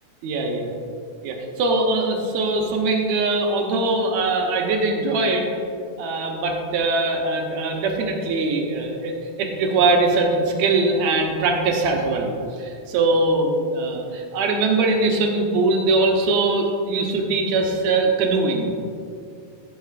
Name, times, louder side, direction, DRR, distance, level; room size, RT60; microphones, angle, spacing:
voice 1, 0.2-0.7 1.2-5.5 6.0-18.7, right 3 dB, 75° right, 2 dB, 2.1 m, -22 dB
15.0 x 6.5 x 2.5 m, 2.3 s
omnidirectional pair, 3.4 m